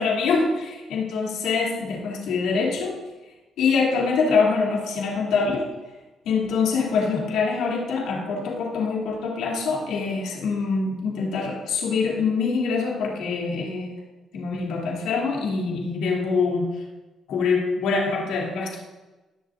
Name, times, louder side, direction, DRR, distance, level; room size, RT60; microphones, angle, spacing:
voice 1, 0.0-2.9 3.6-5.7 6.2-13.9 14.3-16.6 17.3-18.8, left 4 dB, 85° left, -2 dB, 2.7 m, -24 dB
19.5 x 7.0 x 2.5 m, 1.1 s
cardioid pair, 90°, 0 cm